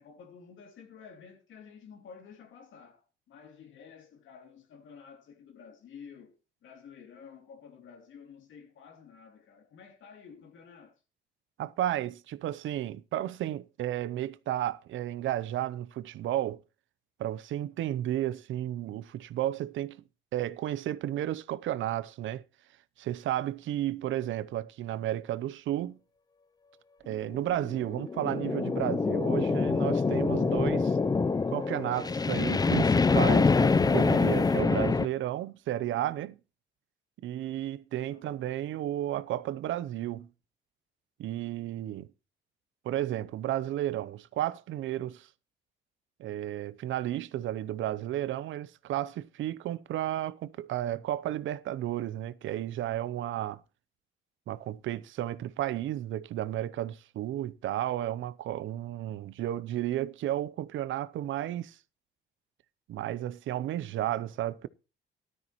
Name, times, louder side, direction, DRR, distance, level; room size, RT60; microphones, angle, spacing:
voice 1, 0.0-6.3 6.6-11.0 38.1-38.6, left 6 dB, 75° left, 2.9 m, -51 dB
voice 2, 11.6-16.6 17.2-20.0 20.3-22.4 23.0-26.0 27.0-31.0 31.5-36.4 37.2-40.3 41.2-42.1 42.8-45.3 46.2-53.6 54.5-61.8 62.9-64.7, right 13 dB, 75° right, 0.7 m, -33 dB
sound 1, 27.3-35.1, left 4 dB, 20° left, 0.5 m, -25 dB
14.0 x 12.5 x 3.0 m
cardioid pair, 90°, 20 cm